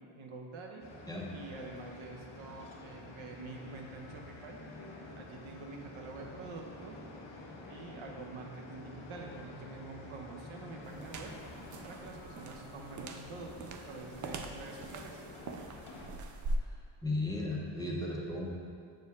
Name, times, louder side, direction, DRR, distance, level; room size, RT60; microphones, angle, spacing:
voice 1, 0.2-0.9 1.3-4.6 5.2-7.0 7.7-11.3 11.8-15.2, right 3 dB, 75° right, 1 dB, 0.9 m, -47 dB
sound 1, 0.8-16.1, left 2 dB, 55° left, 1.2 m, -49 dB
sound 2, 10.8-16.6, right 2 dB, 40° right, 0.4 m, -42 dB
voice 2, 17.0-18.5, left 2 dB, 10° left, -4 dB, 0.7 m, -35 dB
7.8 x 4.5 x 3.6 m, 2.3 s
cardioid pair, 125°, 48 cm